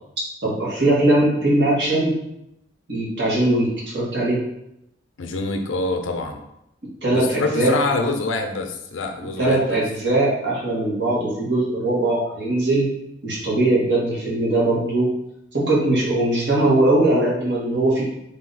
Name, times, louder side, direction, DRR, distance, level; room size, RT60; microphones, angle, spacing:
voice 1, 0.4-2.1 2.9-4.4 7.0-7.7 9.4-12.9 13.2-15.1 15.5-18.0, right 1 dB, 65° right, -6 dB, 1.6 m, -20 dB
voice 2, 5.2-6.4 7.1-9.8, left 3 dB, 90° left, 5 dB, 0.5 m, -26 dB
3.9 x 2.7 x 3.9 m, 0.82 s
head